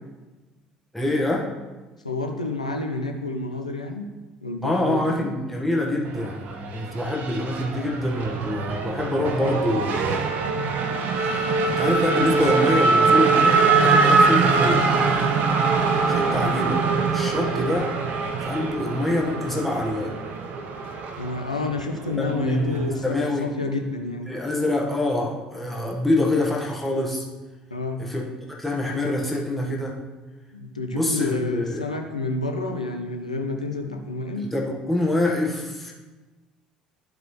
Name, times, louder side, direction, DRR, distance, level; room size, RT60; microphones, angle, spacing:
voice 1, 0.9-1.5 4.6-10.2 11.2-15.0 16.1-16.8 17.1-17.9 18.4-20.1 22.2-23.5 24.3-27.3 28.0-30.0 30.9-31.9 34.4-35.9, left 1 dB, 5° left, -2 dB, 1.5 m, -25 dB
voice 2, 2.0-4.0 4.4-5.3 16.4-16.5 21.2-24.3 27.7-28.1 30.5-34.5, left 3 dB, 85° left, 4 dB, 0.6 m, -29 dB
Race car auto racing / Accelerating revving vroom, 6.1-23.0, right 4 dB, 50° right, 0.7 m, -23 dB
12.0 x 4.8 x 3.2 m, 1.2 s
figure-of-eight pair, 60°, 4 cm